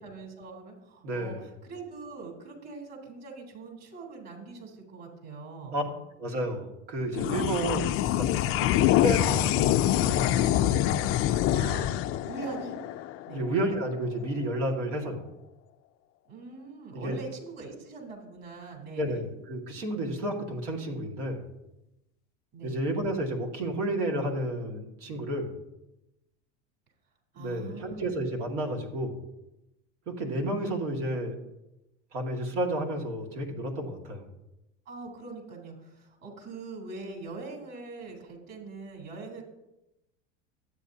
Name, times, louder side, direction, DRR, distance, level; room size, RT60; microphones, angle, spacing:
voice 1, 0.0-6.0 9.0-9.2 11.5-12.8 13.3-13.5 16.3-19.2 22.5-22.8 27.3-28.2 34.9-39.4, right 4 dB, 45° right, 0 dB, 3.5 m, -42 dB
voice 2, 1.0-1.4 5.7-5.8 6.2-10.6 13.3-15.3 16.9-17.2 19.0-21.4 22.6-25.5 27.4-29.2 30.1-31.4 32.1-34.2, right 1 dB, 80° right, 1 dB, 2.0 m, -31 dB
sound 1, 7.1-13.9, left 12 dB, 40° left, 0.4 m, -25 dB
12.5 x 8.5 x 2.7 m, 0.93 s
hypercardioid pair, 95°, 36 cm